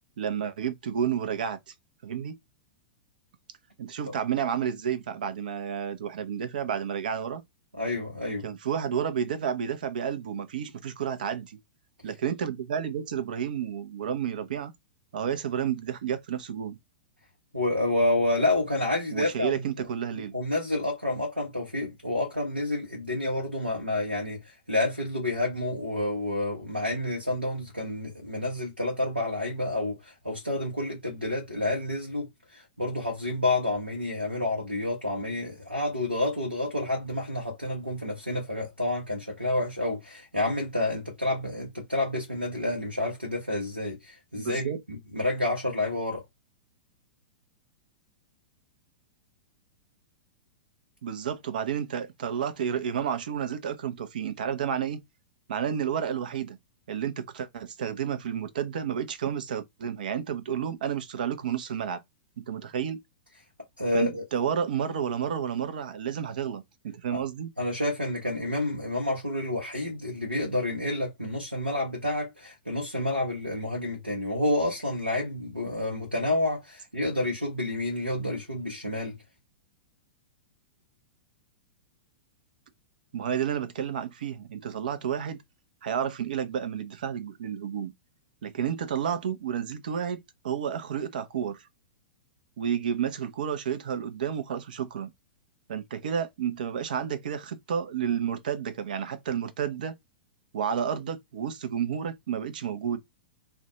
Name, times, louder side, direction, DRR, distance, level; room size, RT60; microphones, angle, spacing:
voice 1, 0.2-1.7 2.0-2.3 3.8-7.4 8.4-11.6 12.0-14.7 15.1-16.8 19.1-20.3 44.3-44.8 51.0-55.0 55.5-56.6 56.9-62.0 62.4-63.0 63.9-67.5 83.1-85.4 85.8-87.9 88.4-90.2 90.4-91.7 92.6-95.1 95.7-99.9 100.5-103.0, right 8 dB, 55° right, 0.6 m, -31 dB
voice 2, 7.8-8.4 17.5-19.6 20.3-46.2 63.8-64.2 67.1-67.2 67.6-79.2, left 1 dB, 90° right, 0.9 m, -29 dB
2.5 x 2.2 x 3.9 m
figure-of-eight pair, 100°, 5 cm